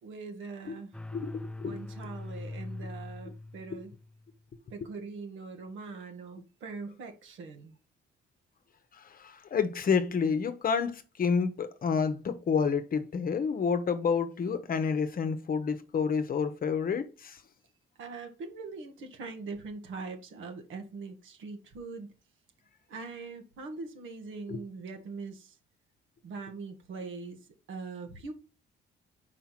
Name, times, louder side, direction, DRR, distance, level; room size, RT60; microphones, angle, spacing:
voice 1, 0.0-1.0 1.6-3.9 4.7-7.8 18.0-22.1 22.9-25.6 26.2-27.4 27.7-28.3, right 4 dB, 75° right, 1.6 m, -42 dB
sound 1, 0.9-4.3, left 2 dB, 5° left, 0.5 m, -42 dB
voice 2, 1.1-1.8 9.1-17.4 24.5-24.6, left 6 dB, 45° left, 0.9 m, -29 dB
4.9 x 4.6 x 5.8 m
cardioid pair, 90°, 20 cm